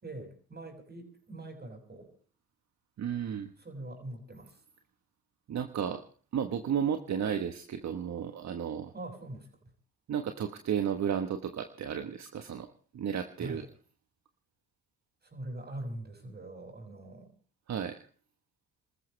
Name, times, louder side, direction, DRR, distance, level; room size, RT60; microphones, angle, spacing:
voice 1, 0.0-2.1 3.6-4.6 8.9-9.5 13.4-13.7 15.2-17.3, right 1 dB, 30° right, 5 dB, 6.5 m, -43 dB
voice 2, 3.0-3.5 5.5-6.0 6.3-8.9 10.1-12.7 12.9-13.7 17.7-18.1, right 8 dB, 55° right, 7 dB, 1.4 m, -33 dB
28.0 x 14.0 x 3.3 m, 0.40 s
supercardioid pair, 70°, 32 cm